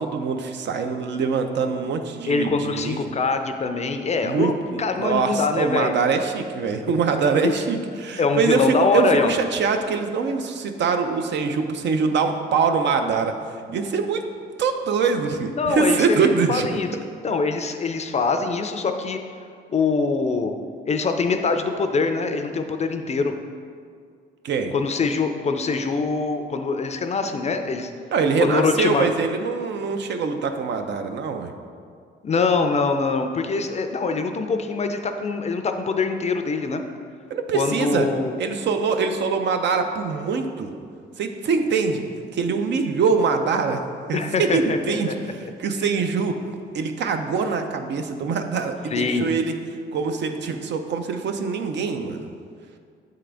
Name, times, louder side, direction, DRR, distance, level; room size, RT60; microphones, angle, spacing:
voice 1, 0.0-3.0 4.2-13.3 13.7-14.2 14.6-16.7 24.4-24.7 28.1-31.5 37.3-38.1 38.4-40.7 41.2-42.0 42.3-43.8 44.1-46.4 46.7-49.5 49.9-52.3, right 5 dB, 65° right, 6 dB, 0.5 m, -23 dB
voice 2, 2.2-5.9 7.4-7.5 8.2-9.3 15.5-19.2 19.7-20.5 20.9-23.3 24.7-27.9 28.4-29.0 32.2-36.8 37.5-38.3 44.1-45.1 48.9-49.2, left 4 dB, 35° left, 6 dB, 0.4 m, -23 dB
7.6 x 3.7 x 3.4 m, 2.2 s
cardioid pair, 90°, 20 cm